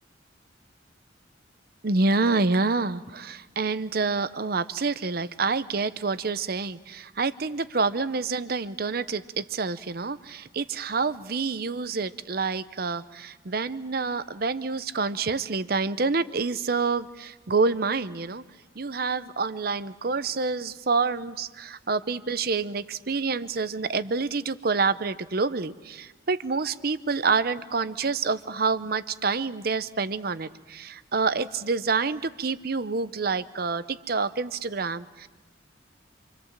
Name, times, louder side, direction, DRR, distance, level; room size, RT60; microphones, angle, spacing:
voice 1, 1.8-18.4 18.8-35.3, right 4 dB, 55° right, 14 dB, 0.8 m, -27 dB
27.0 x 25.5 x 7.4 m, 1.3 s
head